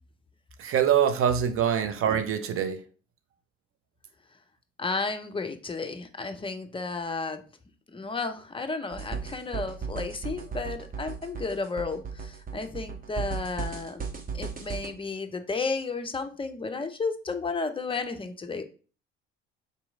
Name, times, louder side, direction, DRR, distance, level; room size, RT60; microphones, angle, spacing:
voice 1, 0.6-2.8, right 8 dB, 45° right, 0.6 m, -24 dB
voice 2, 4.8-7.4 7.9-14.1 14.3-18.6, left 4 dB, 15° left, 0.6 m, -33 dB
sound 1, 8.9-14.9, right 5 dB, 25° right, 1.0 m, -35 dB
4.0 x 3.0 x 3.5 m
hypercardioid pair, 55°, 32 cm